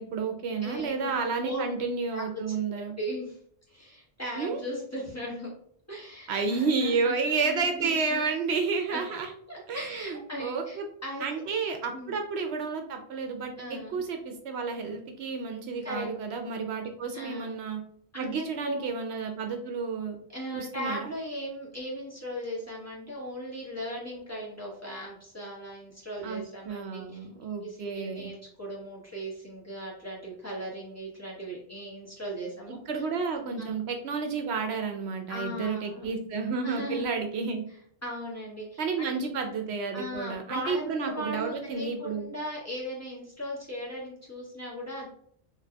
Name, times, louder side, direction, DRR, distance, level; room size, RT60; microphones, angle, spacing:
voice 1, 0.0-2.9 4.4-4.6 6.3-9.3 9.7-10.9 11.2-17.8 18.1-20.2 20.5-21.1 26.2-28.3 32.9-37.6 38.8-42.3, right 4 dB, 75° right, 4 dB, 0.8 m, -31 dB
voice 2, 0.6-1.7 2.1-3.4 3.7-5.5 5.9-7.1 7.4-8.2 8.9-9.0 9.5-11.4 11.9-12.1 13.6-14.0 15.8-16.1 17.1-17.6 18.1-18.8 20.3-27.2 27.6-32.8 33.6-33.7 35.3-36.1 36.6-37.1 38.0-39.2 39.9-45.1, equal, 15° left, -5 dB, 1.2 m, -38 dB
4.1 x 2.9 x 2.2 m, 0.63 s
omnidirectional pair, 1.2 m